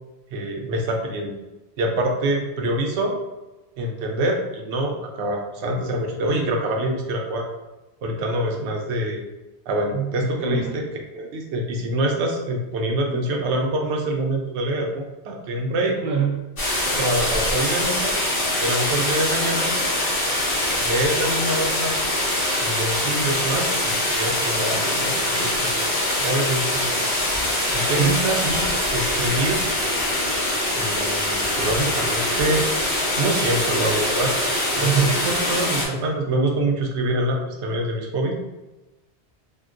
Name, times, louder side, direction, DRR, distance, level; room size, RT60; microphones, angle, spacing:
voice 1, 0.3-1.3 1.8-3.1 3.8-7.5 8.0-9.2 9.7-16.0 16.8-18.1 18.6-19.7 20.8-22.0 22.6-27.1 27.7-28.7 28.9-29.6 30.8-32.7 33.2-34.3 34.8-38.3, right 1 dB, 85° right, 1 dB, 0.9 m, -25 dB
voice 2, 9.9-10.8 13.1-13.2 16.0-16.4 28.0-28.2 34.8-35.2, right 8 dB, 55° right, -1 dB, 0.8 m, -24 dB
sound 1, 16.6-35.9, left 1 dB, 55° left, 1.1 m, -23 dB
3.6 x 2.2 x 2.4 m, 1.0 s
omnidirectional pair, 1.1 m